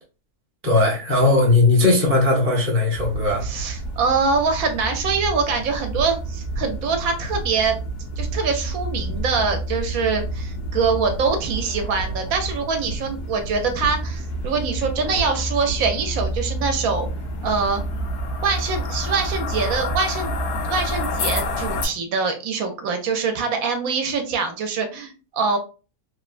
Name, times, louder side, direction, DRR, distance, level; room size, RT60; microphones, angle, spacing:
voice 1, 0.6-3.4, left 2 dB, 20° right, 0.3 m, -18 dB
sound 1, 2.9-21.9, right 1 dB, 85° left, 1.2 m, -29 dB
voice 2, 3.4-7.8 8.2-17.1 17.4-17.8 18.4-20.3 20.6-25.6, right 4 dB, 70° right, 1.0 m, -24 dB
3.1 x 2.1 x 2.4 m
omnidirectional pair, 1.6 m